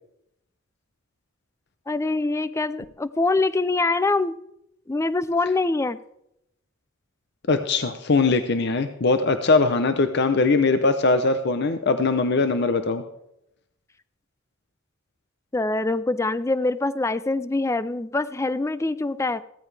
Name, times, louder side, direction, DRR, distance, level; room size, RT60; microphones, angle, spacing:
voice 1, 1.9-4.4 4.9-6.0 15.5-19.4, left 2 dB, 15° left, 15 dB, 0.3 m, -24 dB
voice 2, 7.5-13.0, left 3 dB, 55° left, 9 dB, 0.7 m, -21 dB
16.0 x 13.5 x 3.4 m, 0.82 s
head